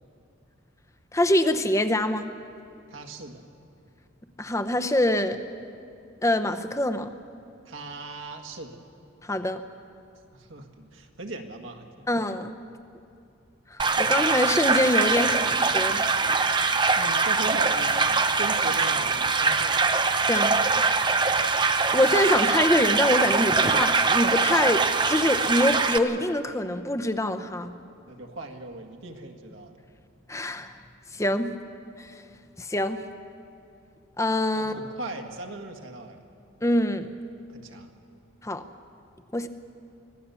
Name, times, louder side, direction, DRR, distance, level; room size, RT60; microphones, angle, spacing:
voice 1, 1.1-2.3 4.4-5.4 6.2-7.1 9.2-9.6 12.1-12.6 13.7-16.0 20.3-20.6 20.8-21.1 21.9-27.8 30.3-30.8 31.1-31.5 32.0-32.1 32.6-33.0 34.2-34.7 36.6-37.1 38.4-38.6 39.3-39.5, left 1 dB, 15° left, 9 dB, 0.7 m, -25 dB
voice 2, 2.9-3.4 7.6-8.8 10.3-12.1 17.0-19.8 28.1-29.8 34.5-36.2 37.5-37.9, right 2 dB, 75° right, 3 dB, 1.7 m, -38 dB
sound 1, 13.8-26.0, right 4 dB, 20° right, 0.6 m, -23 dB
25.0 x 16.5 x 7.0 m, 2.5 s
head